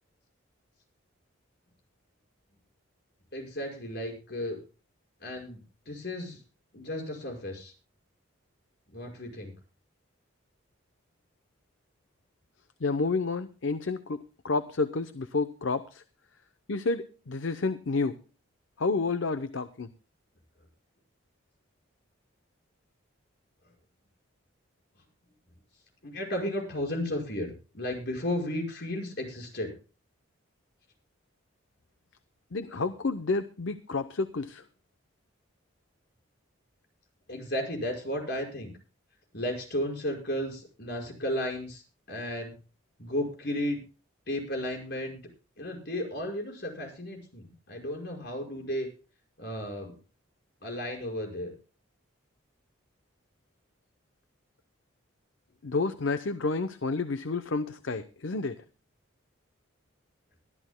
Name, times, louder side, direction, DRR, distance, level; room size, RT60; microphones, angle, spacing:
voice 1, 3.3-4.6 5.2-6.4 6.7-7.7 8.9-9.5 26.0-29.7 37.3-38.7 39.3-42.5 43.0-43.8 44.3-45.2 45.6-48.9 49.4-49.9 50.6-51.5, left 1 dB, 50° left, 1 dB, 5.6 m, -34 dB
voice 2, 12.8-16.0 16.7-18.2 18.8-19.9 32.5-34.6 55.6-58.6, left 3 dB, 65° left, 11 dB, 0.7 m, -30 dB
23.0 x 13.0 x 2.2 m, 0.34 s
head